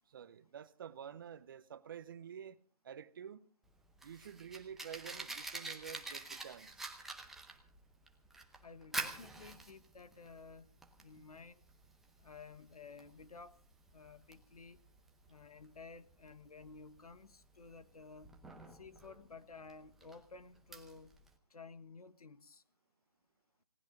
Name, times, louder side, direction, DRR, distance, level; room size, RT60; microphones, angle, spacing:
voice 1, 0.1-2.6 2.8-3.5 4.0-6.9, right 8 dB, 35° right, 0.8 m, -49 dB
Fire, 3.7-21.3, right 3 dB, ahead, 0.7 m, -48 dB
voice 2, 8.6-10.7 11.0-11.6 12.2-13.6 13.9-14.8 15.3-18.4 18.7-21.1 21.5-22.6, left 4 dB, 70° left, 1.3 m, -54 dB
28.5 x 18.0 x 2.5 m
figure-of-eight pair, 150°, 20 cm